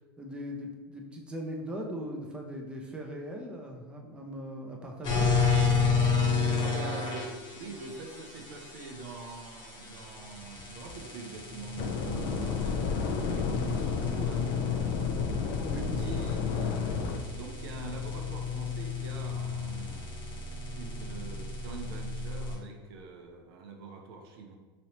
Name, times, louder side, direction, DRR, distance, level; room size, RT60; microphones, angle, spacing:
voice 1, 0.2-5.3 15.7-16.0, equal, 10° right, 0 dB, 0.5 m, -39 dB
sound 1, 5.0-22.5, left 5 dB, 40° left, 1.1 m, -32 dB
voice 2, 6.6-15.1 16.0-24.6, right 4 dB, 75° right, 2 dB, 0.6 m, -44 dB
sound 2, 11.8-17.2, left 5 dB, 55° left, 0.4 m, -31 dB
3.0 x 2.8 x 2.8 m, 1.3 s
hypercardioid pair, 105°, 13 cm